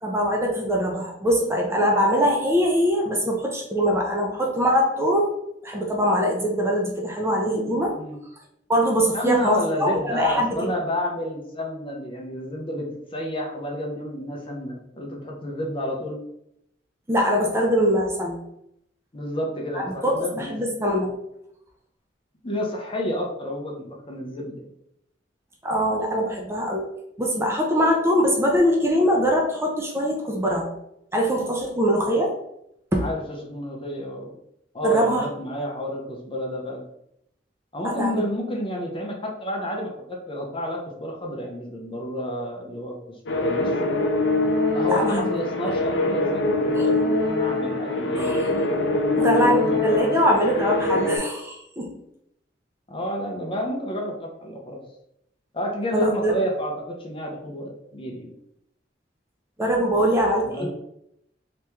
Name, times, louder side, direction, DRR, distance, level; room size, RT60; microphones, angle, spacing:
voice 1, 0.0-5.3 5.6-7.9 8.7-10.7 17.1-18.4 19.7-21.1 25.6-26.9 27.2-30.7 31.1-32.3 32.9-33.0 34.8-35.3 37.8-38.2 44.9-45.3 46.8-46.9 48.1-48.5 49.1-51.9 55.9-56.4 59.6-60.7, equal, 15° right, -1 dB, 0.5 m, -22 dB
voice 2, 9.1-16.2 19.1-20.5 22.4-24.6 33.0-34.4 34.7-36.8 37.7-43.0 43.3-44.0 44.7-48.4 48.9-50.4 52.9-54.8 55.5-58.3 59.9-60.1 60.4-60.7, equal, 30° left, 0 dB, 0.6 m, -30 dB
sound 1, 43.3-51.2, left 2 dB, 75° left, 0.6 m, -23 dB
3.0 x 2.9 x 3.4 m, 0.78 s
head